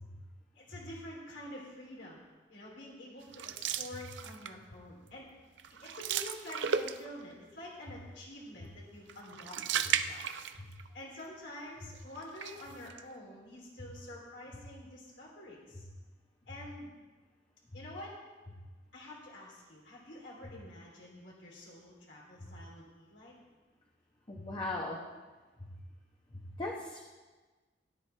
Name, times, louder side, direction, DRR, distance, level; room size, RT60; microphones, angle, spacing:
voice 1, 0.5-2.2 2.5-5.3 5.8-10.3 10.7-15.9 16.5-16.9 17.7-18.1 18.9-23.3, left 1 dB, 90° left, -5 dB, 3.2 m, -48 dB
sound 1, 3.3-4.7 5.1-5.3 5.6-7.3 9.1-10.9 11.2-11.3 12.1-13.0, right 7 dB, 80° right, 0.5 m, -35 dB
voice 2, 24.3-25.0 26.6-27.0, left 2 dB, 30° left, -2 dB, 1.0 m, -37 dB
17.0 x 10.5 x 3.4 m, 1.3 s
head